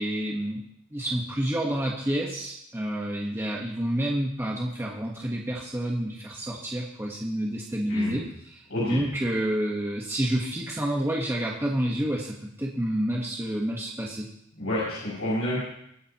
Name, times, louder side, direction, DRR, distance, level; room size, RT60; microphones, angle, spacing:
voice 1, 0.0-14.3, right 1 dB, 10° right, -2 dB, 1.3 m, -29 dB
voice 2, 7.9-8.2 8.7-9.0 14.6-15.6, left 1 dB, 85° left, -9 dB, 6.2 m, -29 dB
22.5 x 10.0 x 3.0 m, 0.75 s
head